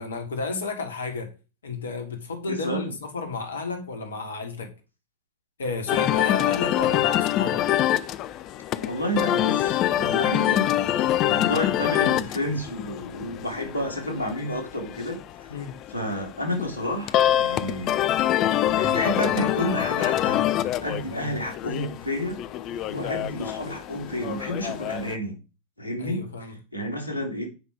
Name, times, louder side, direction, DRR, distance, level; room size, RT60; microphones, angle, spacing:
voice 1, 0.0-1.3 1.6-4.7 5.6-7.6 15.5-15.7 20.9-21.3 22.9-23.1 26.0-26.6, left 3 dB, 65° left, 1.7 m, -32 dB
voice 2, 2.5-2.9 8.8-15.2 15.9-17.9 18.7-20.5 20.8-22.4 22.9-25.4 25.8-26.3 26.7-27.5, equal, 90° right, 2.4 m, -30 dB
sound 1, 5.9-25.2, left 12 dB, 35° left, 0.6 m, -25 dB
7.9 x 5.3 x 5.1 m
figure-of-eight pair, 90°, 0 cm